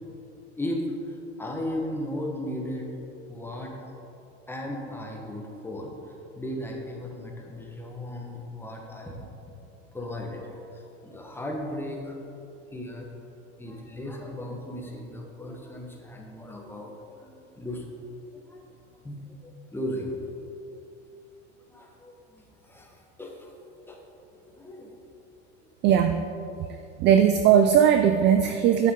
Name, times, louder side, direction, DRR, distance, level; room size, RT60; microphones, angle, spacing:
voice 1, 0.6-2.9 3.3-3.9 4.5-5.9 6.4-9.5 9.9-12.2 12.7-13.1 13.6-17.0 17.2-17.8 18.3-18.6 19.0-20.3 21.7-23.5 23.9-24.0 24.3-25.0, left 1 dB, 5° left, 0 dB, 1.2 m, -36 dB
voice 2, 25.8-26.3 26.6-26.7 27.0-28.9, right 9 dB, 30° right, 7 dB, 0.4 m, -19 dB
9.3 x 7.0 x 3.7 m, 2.7 s
supercardioid pair, 115°, 36 cm